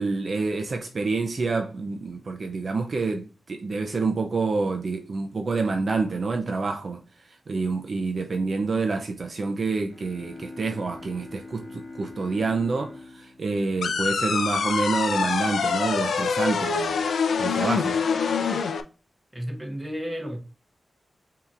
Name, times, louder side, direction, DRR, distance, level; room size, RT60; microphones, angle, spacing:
voice 1, 0.0-7.0 7.3-18.0, right 4 dB, 45° right, 0.5 m, -28 dB
sound 1, 9.9-14.6, left 2 dB, 15° left, 1.8 m, -43 dB
sound 2, 13.8-18.8, left 5 dB, 85° left, 0.5 m, -25 dB
voice 2, 19.3-20.4, equal, 10° right, 1.2 m, -32 dB
6.8 x 2.8 x 2.4 m
wide cardioid pair, 130°, 0 cm